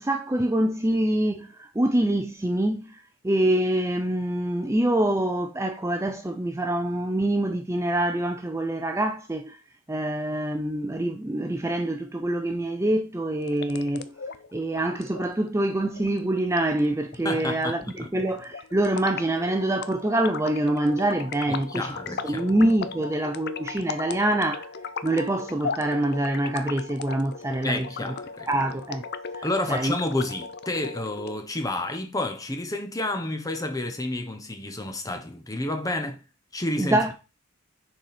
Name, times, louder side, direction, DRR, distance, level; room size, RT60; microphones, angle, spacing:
voice 1, 0.0-3.0 3.2-9.6 9.9-14.1 14.5-21.9 22.2-24.7 25.0-27.9 28.5-29.0 29.4-29.9 36.8-37.1, right 1 dB, 10° right, 0.5 m, -25 dB
sound 1, 13.4-31.4, left 5 dB, 45° left, 0.5 m, -37 dB
voice 2, 17.2-18.1 21.5-22.5 27.6-28.5 29.4-36.2 36.5-37.0, left 2 dB, 15° left, 0.8 m, -30 dB
6.6 x 4.8 x 4.2 m
head